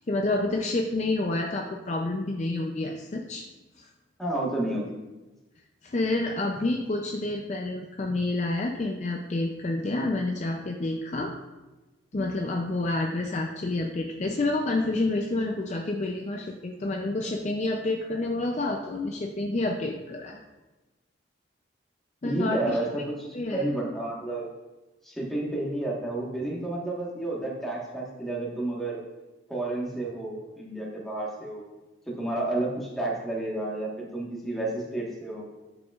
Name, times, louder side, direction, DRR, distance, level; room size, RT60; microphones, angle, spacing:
voice 1, 0.1-3.4 3.8-3.9 5.8-11.3 12.1-20.4 22.2-22.8 23.3-23.7, left 2 dB, 35° left, 2 dB, 0.4 m, -29 dB
voice 2, 4.2-4.9 22.2-24.5 25.0-29.0 29.5-31.6 32.2-35.5, right 2 dB, ahead, -4 dB, 1.3 m, -31 dB
11.5 x 5.0 x 2.4 m, 1.1 s
head